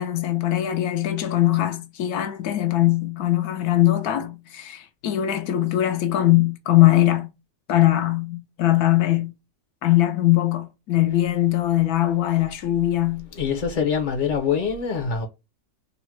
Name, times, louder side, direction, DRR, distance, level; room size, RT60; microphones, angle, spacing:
voice 1, 0.0-7.3 7.7-9.3 9.8-13.3, left 14 dB, 80° left, 1.1 m, -21 dB
voice 2, 13.3-15.3, left 6 dB, 45° left, 0.5 m, -24 dB
4.0 x 2.1 x 4.4 m
omnidirectional pair, 1.6 m